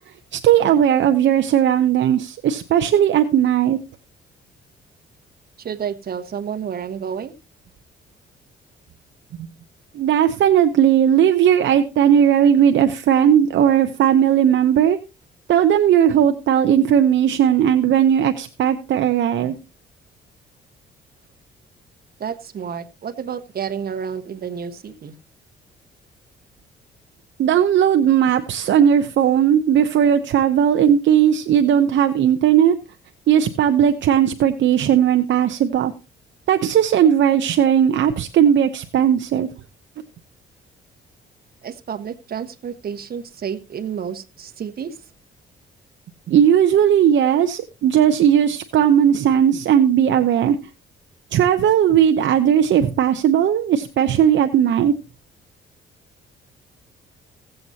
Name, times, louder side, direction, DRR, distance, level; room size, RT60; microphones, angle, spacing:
voice 1, 0.3-3.8 9.4-9.5 9.9-15.0 15.5-19.6 27.4-32.8 33.3-35.9 36.5-39.5 46.3-50.6 51.3-54.9, right 9 dB, 65° right, 0.8 m, -17 dB
voice 2, 5.6-7.3 22.2-25.1 41.6-45.1, right 7 dB, 50° right, 1.3 m, -30 dB
16.5 x 7.9 x 2.8 m
cardioid pair, 90°, 20 cm